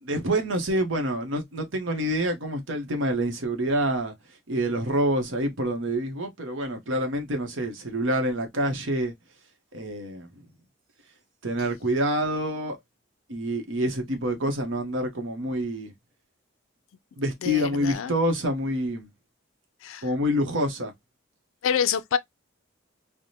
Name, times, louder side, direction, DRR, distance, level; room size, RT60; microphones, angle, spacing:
voice 1, 0.0-4.1 4.5-9.1 9.7-10.5 11.4-12.8 13.3-15.9 17.2-19.1 20.0-20.9, equal, 65° right, 0.9 m, -27 dB
voice 2, 17.4-18.1 19.8-20.0 21.6-22.2, left 8 dB, 80° left, 0.4 m, -27 dB
3.3 x 2.1 x 2.7 m
head